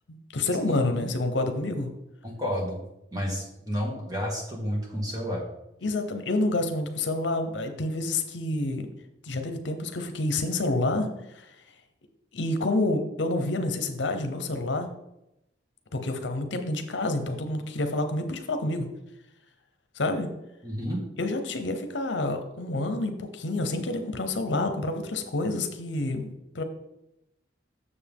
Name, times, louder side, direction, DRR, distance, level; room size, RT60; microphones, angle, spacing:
voice 1, 0.1-1.9 5.8-8.9 9.2-11.5 12.3-14.9 15.9-18.9 19.9-20.3 21.2-26.6, left 2 dB, 75° left, 7 dB, 0.8 m, -28 dB
voice 2, 0.7-1.1 2.2-2.8 3.1-5.4 20.6-21.0, equal, 20° right, -1 dB, 1.6 m, -31 dB
7.1 x 6.7 x 3.6 m, 0.87 s
head